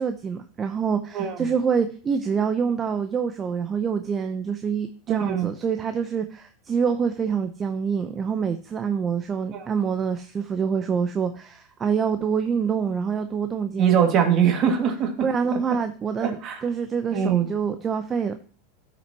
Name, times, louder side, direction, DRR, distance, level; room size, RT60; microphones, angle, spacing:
voice 1, 0.0-14.0 15.2-18.4, right 6 dB, 25° right, 8 dB, 0.7 m, -26 dB
voice 2, 1.1-1.5 5.1-5.5 9.5-9.7 13.8-15.3 16.2-16.6 17.1-17.5, right 8 dB, 45° right, 4 dB, 2.2 m, -22 dB
13.0 x 6.1 x 2.9 m, 0.42 s
hypercardioid pair, 100°, 0 cm